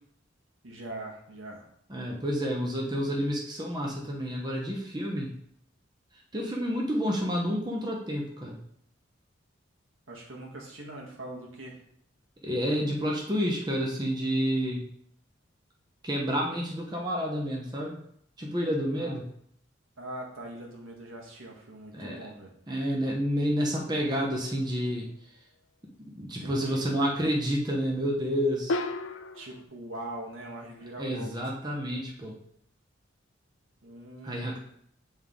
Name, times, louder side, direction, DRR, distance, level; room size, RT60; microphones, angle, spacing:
voice 1, 0.6-1.7 10.1-11.8 18.9-19.2 20.0-22.5 26.4-26.9 29.3-31.5 33.8-34.6, right 1 dB, 85° right, -1 dB, 1.5 m, -42 dB
voice 2, 1.9-5.3 6.3-8.6 12.4-14.8 16.0-18.0 18.4-19.2 21.9-22.2 22.7-25.1 26.0-28.8 31.0-32.4 34.2-34.6, equal, 20° right, -1 dB, 0.8 m, -29 dB
sound 1, 24.1-24.7 28.7-29.6, left 2 dB, 80° left, 0.5 m, -34 dB
7.6 x 3.6 x 3.8 m, 0.67 s
head